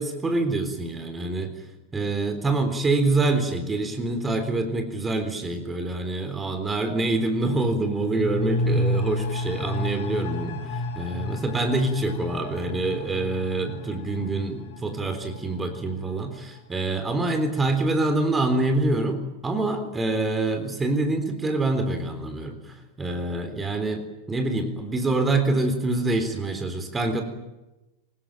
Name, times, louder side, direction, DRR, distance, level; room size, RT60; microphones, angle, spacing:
voice 1, 0.0-1.5 1.9-27.2, right 2 dB, 15° right, 6 dB, 3.8 m, -26 dB
sound 1, 7.5-16.9 17.2-17.3, left 1 dB, 50° left, 2.7 m, -31 dB
24.0 x 20.5 x 9.1 m, 0.99 s
figure-of-eight pair, 90°, 0 cm